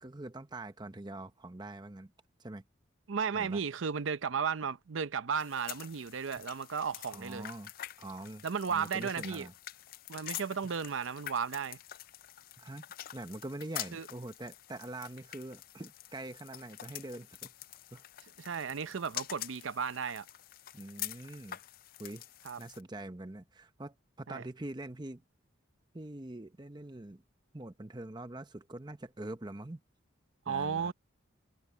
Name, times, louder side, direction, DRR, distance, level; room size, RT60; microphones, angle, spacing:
voice 1, 0.0-2.1 2.4-2.6 3.3-3.6 7.0-7.7 8.0-9.5 12.6-12.8 13.1-17.5 17.9-18.0 20.7-21.6 22.0-22.3 22.6-25.2 25.9-27.2 27.5-29.8 30.5-30.9, right 2 dB, 20° right, 0.8 m, -44 dB
voice 2, 3.1-7.5 8.4-9.5 10.1-11.8 13.9-14.1 18.4-20.3 22.4-22.6 24.3-24.4 30.5-30.9, right 6 dB, 75° right, 0.6 m, -34 dB
sound 1, 5.4-22.8, left 13 dB, 45° left, 0.4 m, -46 dB
head